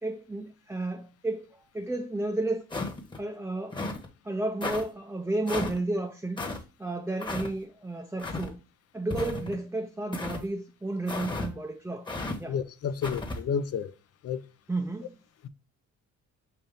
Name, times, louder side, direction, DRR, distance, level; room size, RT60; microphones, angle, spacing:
voice 1, 0.0-2.6 3.2-3.8 4.2-6.4 6.8-8.6 8.9-12.1 12.4-12.6 14.7-15.2, right 2 dB, 10° right, 0.5 m, -32 dB
sound 1, 2.7-3.2 3.7-4.1 4.6-4.8 5.5-5.8 6.4-6.6 7.2-7.5 8.2-8.5 9.1-9.6 10.1-10.4 11.1-11.5 12.1-12.4 13.0-13.4, left 2 dB, 15° left, 1.1 m, -33 dB
voice 2, 12.5-13.9 14.2-14.4, left 7 dB, 50° left, 0.6 m, -30 dB
5.6 x 2.7 x 3.5 m
cardioid pair, 90°, 30 cm